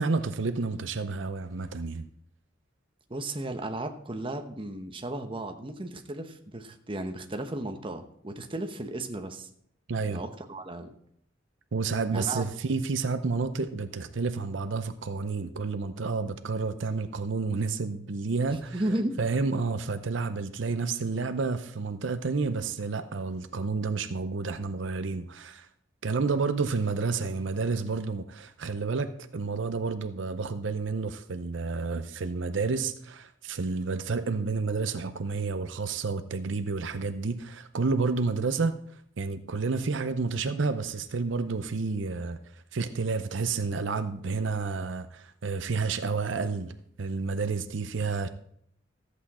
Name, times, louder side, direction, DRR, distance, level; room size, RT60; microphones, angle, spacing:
voice 1, 0.0-2.0 9.9-10.2 11.7-18.8 19.2-25.7 26.0-46.7 47.0-48.3, right 4 dB, 75° right, 0.6 m, -30 dB
voice 2, 3.1-9.5 10.1-10.9 12.1-12.4 18.5-19.2, right 1 dB, 25° right, 1.0 m, -34 dB
14.0 x 8.3 x 4.2 m
head